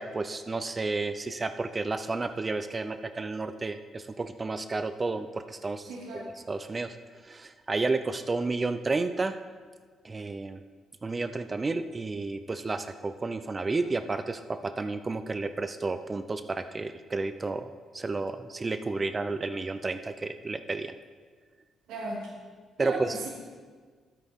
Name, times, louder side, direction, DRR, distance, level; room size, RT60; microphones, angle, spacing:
voice 1, 0.0-5.9 6.1-7.0 7.2-9.4 10.0-10.6 11.0-17.7 17.9-20.9 22.8-23.2, right 3 dB, 25° right, 10 dB, 0.5 m, -31 dB
voice 2, 5.8-6.3 21.9-22.3 22.8-23.3, right 2 dB, 90° right, -4 dB, 2.2 m, -36 dB
12.5 x 9.3 x 3.6 m, 1.5 s
cardioid pair, 90°, 0 cm